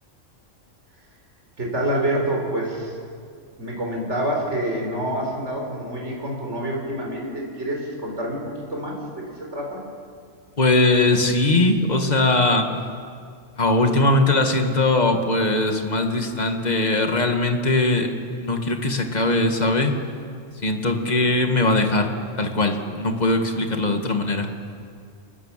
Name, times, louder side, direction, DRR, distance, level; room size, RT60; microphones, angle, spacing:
voice 1, 1.6-3.0 3.6-8.4 8.7-9.8, right 1 dB, 60° right, -1 dB, 4.8 m, -27 dB
voice 2, 10.6-12.7 13.6-18.1 18.4-20.0 20.6-22.1 22.4-24.5, left 2 dB, 35° left, 4 dB, 2.1 m, -20 dB
26.0 x 20.5 x 7.5 m, 2.2 s
omnidirectional pair, 1.3 m